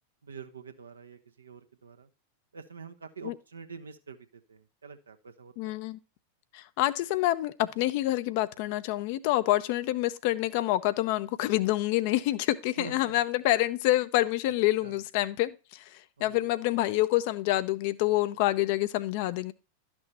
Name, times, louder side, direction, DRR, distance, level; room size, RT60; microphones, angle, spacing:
voice 1, 0.2-2.1 2.5-5.8 12.8-13.1 14.8-15.0 16.2-16.5, right 5 dB, 70° right, 1.1 m, -46 dB
voice 2, 5.6-6.0 6.5-15.8 16.2-19.5, left 16 dB, 50° left, 0.7 m, -27 dB
12.0 x 6.3 x 4.2 m
figure-of-eight pair, 90°, 0 cm